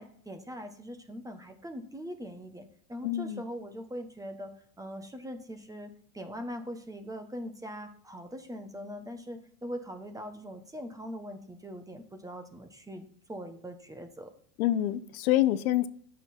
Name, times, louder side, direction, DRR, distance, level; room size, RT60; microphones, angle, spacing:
voice 1, 0.0-4.5 4.8-14.3, equal, 10° right, 1.0 m, -41 dB
voice 2, 3.0-3.4 14.6-15.9, left 13 dB, 75° left, 0.7 m, -26 dB
8.7 x 6.5 x 4.3 m
hypercardioid pair, 110°, 43 cm